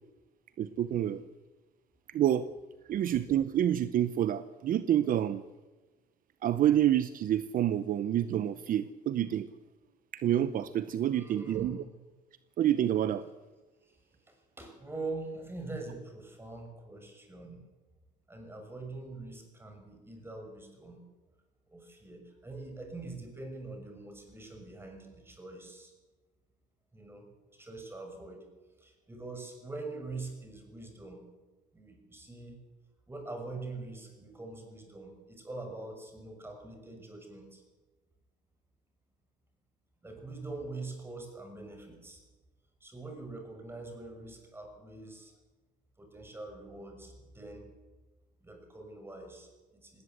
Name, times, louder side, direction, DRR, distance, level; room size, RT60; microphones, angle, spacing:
voice 1, 0.6-1.2 2.1-2.5 2.9-5.4 6.4-9.5 10.1-11.8 12.6-13.3, right 11 dB, 55° right, 14 dB, 0.7 m, -28 dB
voice 2, 11.1-11.8 13.9-14.0 14.3-17.6 18.3-21.0 21.7-25.9 26.9-27.3 27.5-28.4 28.8-31.2 31.7-32.6 33.1-37.6 40.0-42.2 42.8-45.3 46.0-47.7 48.4-50.0, right 3 dB, 15° right, 3 dB, 6.3 m, -44 dB
19.0 x 18.0 x 8.0 m, 1.3 s
cardioid pair, 110°, 17 cm